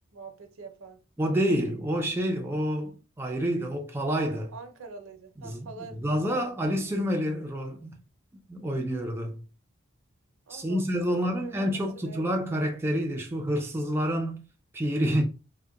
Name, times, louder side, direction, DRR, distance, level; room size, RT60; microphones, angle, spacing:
voice 1, 0.1-1.0 4.5-6.5 10.5-12.6, right 4 dB, 75° right, 0.6 m, -45 dB
voice 2, 1.2-4.5 5.4-5.7 6.0-8.0 8.5-9.4 10.5-14.4 14.7-15.2, equal, 10° right, 0.3 m, -28 dB
2.7 x 2.1 x 2.3 m
head